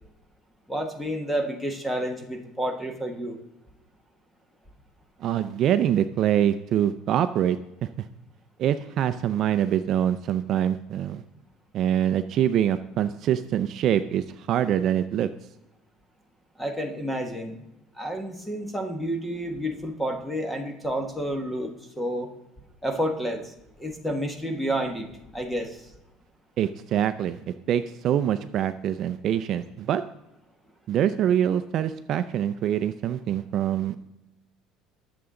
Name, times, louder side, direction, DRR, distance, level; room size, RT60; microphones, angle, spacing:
voice 1, 0.7-3.4 16.6-17.7 18.0-22.3 22.8-25.1 25.3-25.9, equal, 5° left, 4 dB, 1.2 m, -30 dB
voice 2, 5.2-8.1 8.6-11.2 11.7-15.3 26.6-30.0 30.9-34.0, right 10 dB, 40° right, 11 dB, 0.4 m, -25 dB
20.5 x 6.9 x 3.8 m, 0.92 s
cardioid pair, 170°, 0 cm